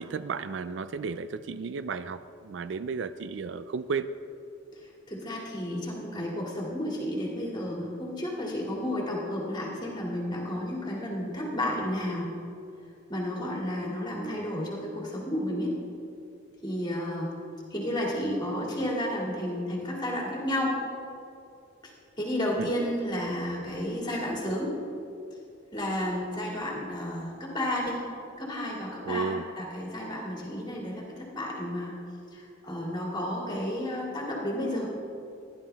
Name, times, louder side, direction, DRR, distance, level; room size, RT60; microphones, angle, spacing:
voice 1, 0.0-4.1 13.4-13.5 22.6-22.7 29.0-29.4, right 5 dB, 65° right, 13 dB, 0.4 m, -33 dB
voice 2, 5.1-12.3 13.1-15.7 16.6-17.4 17.7-20.7 21.8-21.9 22.2-24.7 25.7-28.0 28.4-31.9 32.3-34.9, left 1 dB, 25° left, -3 dB, 2.4 m, -32 dB
16.0 x 11.0 x 3.5 m, 2.6 s
head